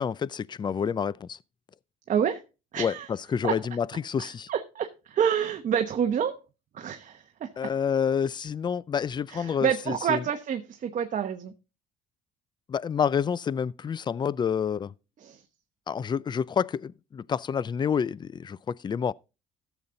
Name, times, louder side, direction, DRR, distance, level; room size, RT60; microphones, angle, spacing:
voice 1, 0.0-1.4 2.8-4.5 7.6-10.2 12.7-14.9 15.9-19.1, left 7 dB, 25° left, 0.4 m, -28 dB
voice 2, 2.1-2.4 2.7-3.1 3.4-3.5 4.2-6.4 6.7-7.5 9.3-11.5 15.2-15.4, right 8 dB, 50° right, 1.1 m, -28 dB
13.5 x 7.1 x 3.8 m
cardioid pair, 110°, 17 cm